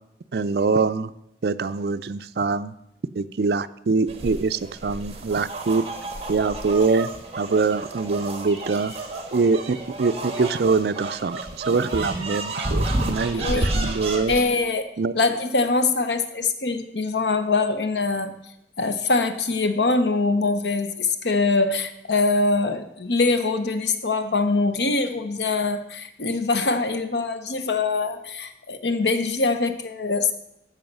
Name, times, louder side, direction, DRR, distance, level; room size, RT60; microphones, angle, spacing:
voice 1, 0.3-1.1 1.4-2.7 3.1-5.8 6.3-7.1 7.4-8.9 9.3-14.3 15.0-15.2, right 4 dB, 60° right, 12 dB, 0.4 m, -24 dB
sound 1, 4.1-14.4, right 2 dB, 35° right, 1.4 m, -30 dB
voice 2, 13.4-13.7 14.3-14.9 15.1-18.3 18.8-30.3, left 3 dB, 70° left, 10 dB, 0.9 m, -23 dB
15.0 x 5.6 x 5.4 m, 0.84 s
head